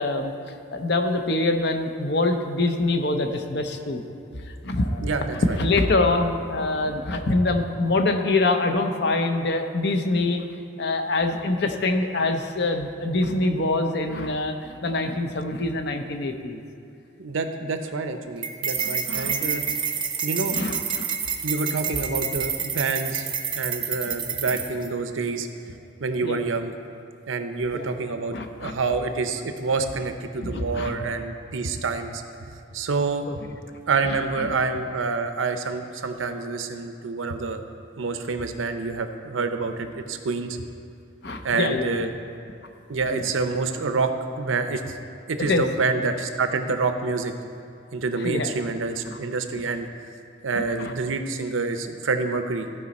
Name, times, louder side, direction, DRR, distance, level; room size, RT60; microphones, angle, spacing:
voice 1, 0.0-4.0 4.6-10.5 10.8-16.6 18.8-19.4 20.5-21.1 26.2-26.4 27.7-27.9 28.3-28.7 30.4-31.0 33.3-33.4 34.4-34.5 41.2-42.1 43.1-43.3 45.4-45.7 48.2-48.5 49.1-49.2 50.5-50.9, left 2 dB, 55° left, 5 dB, 0.7 m, -25 dB
voice 2, 5.0-5.6 17.2-19.6 20.2-20.6 21.4-23.3 23.6-25.5 26.0-26.7 27.3-33.2 33.9-37.6 38.0-40.6 41.4-42.1 42.9-45.0 45.3-47.3 47.9-49.9 50.4-52.7, right 4 dB, 90° right, 7 dB, 0.7 m, -27 dB
sound 1, 18.4-24.9, right 7 dB, 25° right, 0.6 m, -28 dB
14.5 x 5.1 x 4.2 m, 2.5 s
head